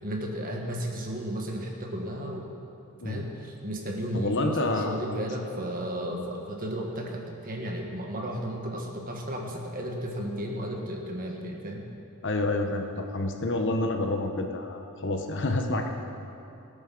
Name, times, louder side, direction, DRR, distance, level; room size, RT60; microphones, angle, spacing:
voice 1, 0.0-2.5 3.0-11.9, equal, 40° right, 1 dB, 1.7 m, -34 dB
voice 2, 4.1-5.3 12.2-15.9, left 2 dB, 55° left, 4 dB, 1.1 m, -28 dB
17.5 x 8.9 x 6.1 m, 2.7 s
head